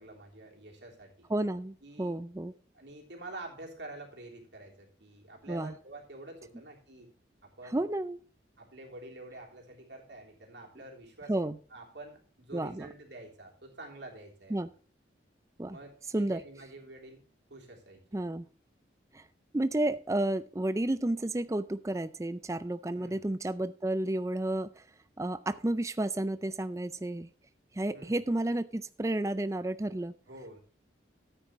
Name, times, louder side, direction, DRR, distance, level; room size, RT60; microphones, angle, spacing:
voice 1, 0.0-1.3 1.8-2.2 2.7-7.1 7.4-7.8 8.6-11.3 11.7-14.7 15.7-17.2 17.5-18.0 22.9-23.3 27.9-28.2 30.3-30.6, right 2 dB, 75° right, 1 dB, 3.4 m, -48 dB
voice 2, 1.3-2.5 5.5-5.7 7.7-8.2 11.3-11.6 12.5-12.9 14.5-14.7 15.6-15.8 16.1-16.4 18.1-18.5 19.1-19.3 19.5-24.9 25.2-27.3 27.7-30.1, right 1 dB, 15° right, 13 dB, 0.4 m, -31 dB
13.5 x 9.1 x 3.1 m, 0.38 s
head